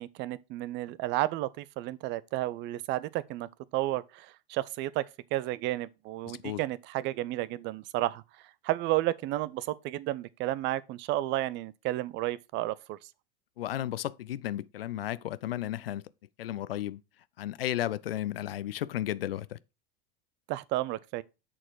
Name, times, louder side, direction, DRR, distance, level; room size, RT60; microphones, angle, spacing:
voice 1, 0.0-5.1 5.3-8.2 8.6-13.0 20.5-21.2, right 16 dB, 40° right, 0.5 m, -32 dB
voice 2, 6.2-6.6 13.6-16.0 16.4-17.0 17.4-19.6, left 13 dB, 80° left, 0.5 m, -34 dB
7.5 x 4.2 x 4.6 m
hypercardioid pair, 90°, 29 cm